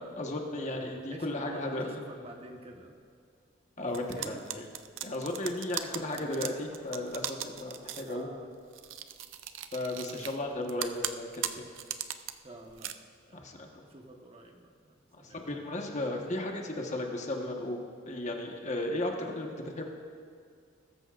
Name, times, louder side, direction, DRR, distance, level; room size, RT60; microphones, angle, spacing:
voice 1, 0.0-2.0 3.8-4.7 5.0-8.3 9.7-11.6 13.3-13.7 15.1-17.8 18.1-19.9, left 1 dB, 40° left, 1 dB, 1.3 m, -35 dB
voice 2, 0.5-2.9 4.1-4.4 6.1-6.4 8.1-8.5 10.0-10.3 10.9-11.0 11.6-11.7 12.4-12.9 13.3-13.4 13.9-15.4, right 1 dB, 30° right, 2 dB, 1.2 m, -48 dB
sound 1, 3.9-8.1 8.7-10.4 10.7-12.3 12.7-12.9, right 11 dB, 85° right, 0.5 m, -38 dB
21.0 x 13.5 x 2.5 m, 2.2 s
head